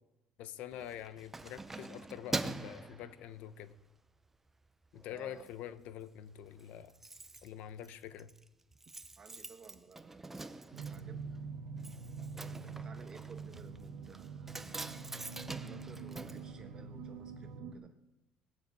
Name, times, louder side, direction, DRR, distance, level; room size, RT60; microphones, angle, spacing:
voice 1, 0.4-3.7 4.9-6.9 7.4-8.3, left 10 dB, 70° left, 0.9 m, -46 dB
Keys jangling, 0.7-3.8 4.3-4.5 4.8-5.5 5.8-5.9 6.1-6.2 6.4-17.3 17.5-17.6, right 2 dB, 10° right, 0.5 m, -45 dB
voice 2, 5.1-5.5 9.2-10.2 10.7-11.3 12.3-14.8 15.6-17.9, right 5 dB, 30° right, 1.1 m, -55 dB
sound 1, 10.7-17.7, right 5 dB, 75° right, 1.3 m, -45 dB
19.0 x 7.1 x 8.5 m
cardioid pair, 140°, 3 cm